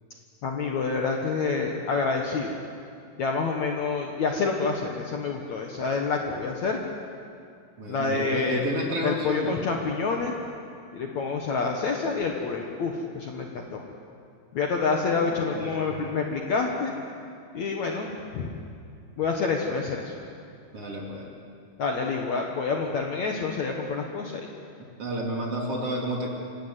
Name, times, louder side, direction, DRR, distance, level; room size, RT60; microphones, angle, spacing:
voice 1, 0.4-2.6 3.2-6.8 7.9-8.6 9.0-10.3 10.9-13.8 14.5-16.9 17.5-18.6 19.2-20.1 21.8-24.5, left 4 dB, 60° left, 1 dB, 2.1 m, -28 dB
voice 2, 7.8-9.6 15.2-15.9 20.7-21.3 25.0-26.3, right 1 dB, 40° right, -1 dB, 3.0 m, -31 dB
27.0 x 18.0 x 8.2 m, 2.3 s
omnidirectional pair, 4.8 m